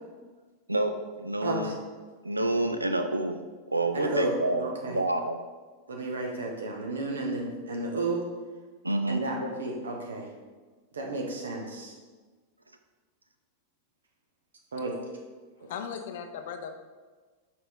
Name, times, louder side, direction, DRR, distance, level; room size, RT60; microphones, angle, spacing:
voice 1, 0.7-1.8 2.2-3.4 3.7-5.4 8.8-9.2, right 1 dB, 85° right, 8 dB, 0.3 m, -28 dB
voice 2, 1.4-1.7 3.9-4.3 4.6-5.0 5.9-8.2 9.1-10.3 10.9-11.9 14.7-14.9, right 2 dB, 70° right, 1 dB, 1.0 m, -32 dB
voice 3, 15.6-16.7, left 7 dB, 55° left, 7 dB, 0.5 m, -37 dB
5.8 x 4.7 x 3.6 m, 1.4 s
figure-of-eight pair, 90°, 0 cm